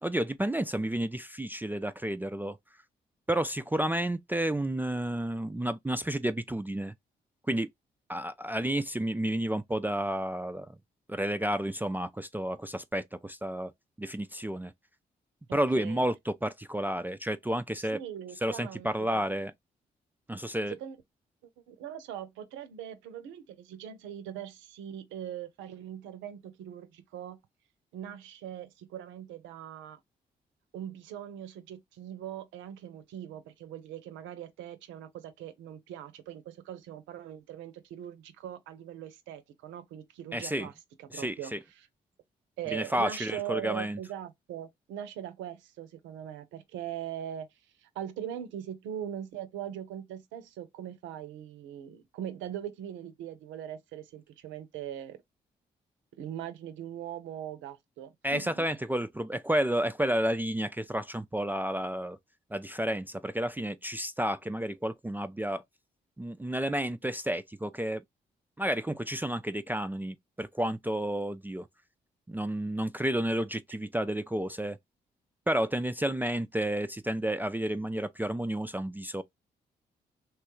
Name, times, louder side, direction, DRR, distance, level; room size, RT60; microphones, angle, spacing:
voice 1, 0.0-2.6 3.3-6.9 7.5-7.7 8.1-10.8 11.1-13.7 14.0-14.7 15.5-18.0 18.4-19.5 20.3-20.8 40.3-40.7 41.1-41.6 42.7-44.0 58.2-62.2 62.5-65.6 66.2-68.0 68.6-71.7 72.3-74.8 75.5-79.2, right 1 dB, 10° right, 0.3 m, -31 dB
voice 2, 15.5-16.0 17.8-19.2 20.7-21.0 21.7-27.4 27.9-30.0 30.7-40.7 41.0-41.9 42.6-47.5 47.8-55.2 56.2-58.7, right 10 dB, 80° right, 0.5 m, -41 dB
3.1 x 2.2 x 3.0 m
hypercardioid pair, 45°, 19 cm